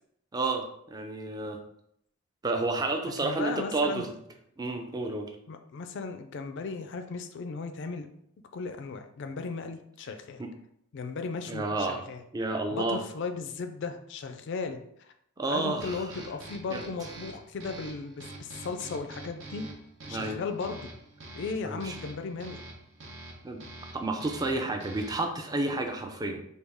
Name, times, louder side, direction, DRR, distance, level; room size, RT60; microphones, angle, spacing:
voice 1, 0.3-1.6 2.4-4.1 4.6-5.3 10.4-10.5 11.5-12.0 12.3-13.0 15.4-16.0 16.7-16.8 20.1-20.4 21.6-22.0 23.4-23.6 23.9-26.4, right 2 dB, 20° right, 4 dB, 0.4 m, -30 dB
voice 2, 3.0-4.1 5.5-8.1 8.5-10.4 10.9-12.2 12.7-15.1 15.5-19.7 20.1-20.9 21.3-22.6, left 4 dB, 60° left, 7 dB, 0.4 m, -36 dB
sound 1, 15.8-25.4, right 2 dB, 65° right, 0.8 m, -45 dB
3.5 x 2.3 x 3.4 m, 0.73 s
head